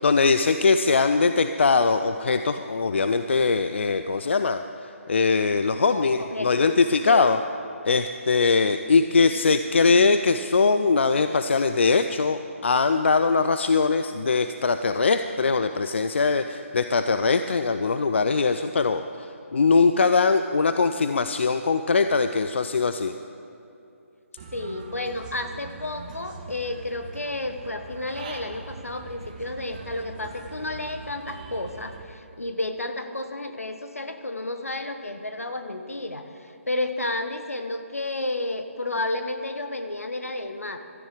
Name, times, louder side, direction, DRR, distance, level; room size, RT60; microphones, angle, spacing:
voice 1, 0.0-7.4 7.8-23.1, left 4 dB, 55° left, 9 dB, 0.5 m, -21 dB
voice 2, 5.7-6.7 7.1-7.3 24.5-40.8, left 2 dB, 75° left, 7 dB, 1.3 m, -31 dB
Human voice / Bird, 24.4-32.0, right 4 dB, 30° right, 1.3 m, -42 dB
16.5 x 13.0 x 5.0 m, 2.8 s
figure-of-eight pair, 145°, 8 cm